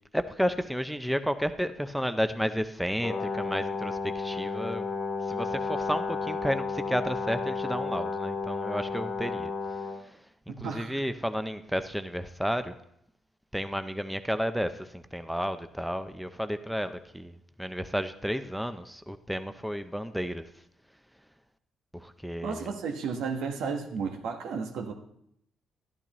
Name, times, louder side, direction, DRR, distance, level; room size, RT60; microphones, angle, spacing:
voice 1, 0.1-4.9 5.3-9.5 10.0-10.2 10.6-12.7 13.5-20.5 21.9-22.7, equal, ahead, 10 dB, 0.4 m, -32 dB
Brass instrument, 3.0-10.0, left 4 dB, 35° left, 1.3 m, -32 dB
voice 2, 10.5-10.9 22.4-24.9, right 5 dB, 85° right, 4 dB, 1.2 m, -33 dB
12.0 x 11.0 x 3.0 m, 0.72 s
cardioid pair, 145°, 0 cm